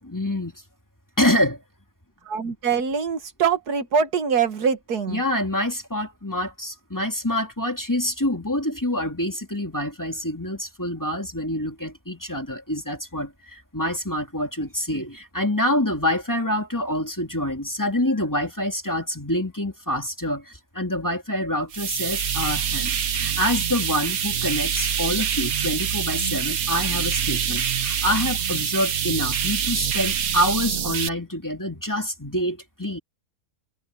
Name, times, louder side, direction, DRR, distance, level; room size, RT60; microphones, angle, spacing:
voice 1, 0.1-0.5 1.2-1.6 5.1-33.0, left 1 dB, 10° left, 2.4 m, -26 dB
voice 2, 2.3-5.2, right 6 dB, 90° right, 2.0 m, -23 dB
sound 1, 21.7-31.1, right 8 dB, 70° right, 1.5 m, -25 dB
omnidirectional pair, 1.6 m